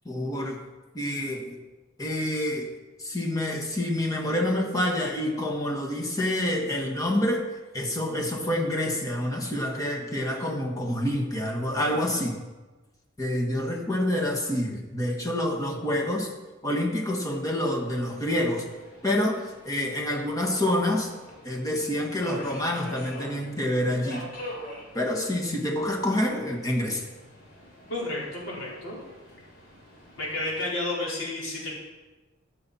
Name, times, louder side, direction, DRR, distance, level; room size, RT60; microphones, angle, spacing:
voice 1, 0.0-0.6 0.9-1.6 2.0-2.7 3.0-7.4 7.7-12.4 13.2-16.3 16.6-18.6 19.0-21.1 21.4-24.2 24.9-27.1, left 1 dB, 15° left, 0 dB, 1.6 m, -27 dB
Subway metro underground, 18.0-30.7, equal, 50° left, 3.5 m, -46 dB
voice 2, 27.9-29.0 30.2-31.7, left 2 dB, 85° left, -5 dB, 4.4 m, -31 dB
14.0 x 8.9 x 4.3 m, 1.2 s
head